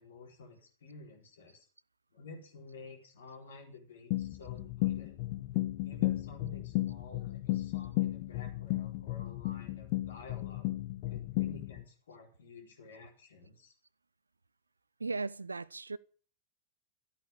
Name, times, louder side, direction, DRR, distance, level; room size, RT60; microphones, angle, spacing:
voice 1, 0.0-1.6 2.1-5.2 5.8-10.7 11.1-13.7, left 3 dB, 65° left, 4.4 m, -52 dB
sound 1, 4.1-11.8, left 17 dB, 45° left, 0.9 m, -34 dB
voice 2, 15.0-16.0, right 3 dB, 80° right, 0.6 m, -37 dB
13.5 x 8.9 x 8.6 m
figure-of-eight pair, 90°, 0 cm